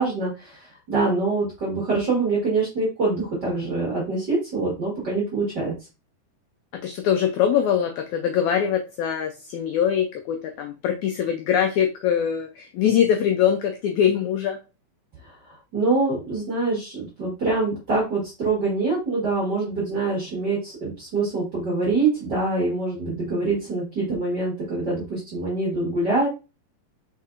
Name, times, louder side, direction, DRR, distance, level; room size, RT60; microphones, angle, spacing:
voice 1, 0.0-5.7 15.2-26.3, right 3 dB, 55° right, -5 dB, 1.2 m, -25 dB
voice 2, 6.7-14.6, left 8 dB, 85° left, 5 dB, 1.6 m, -23 dB
4.5 x 4.2 x 2.4 m, 0.29 s
omnidirectional pair, 3.9 m